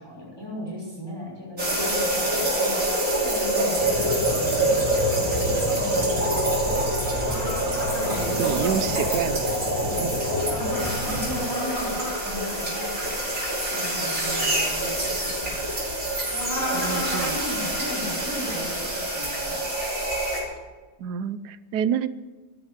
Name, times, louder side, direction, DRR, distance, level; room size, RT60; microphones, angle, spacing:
voice 1, 0.0-6.6 8.0-9.3 9.8-13.2 13.7-15.6 17.3-19.6, left 1 dB, 15° left, -5 dB, 6.3 m, -37 dB
sound 1, 1.6-20.4, right 1 dB, 50° right, 5.5 m, -26 dB
sound 2, 3.8-11.4, equal, 15° right, 5.1 m, -33 dB
sound 3, 7.2-8.8 10.4-12.2 16.3-17.4, equal, 40° left, 4.0 m, -32 dB
voice 2, 8.4-9.6 10.0-10.2 16.7-17.4 21.0-22.1, right 9 dB, 85° right, 15 dB, 1.3 m, -28 dB
13.5 x 10.5 x 8.1 m, 1.3 s
omnidirectional pair, 1.7 m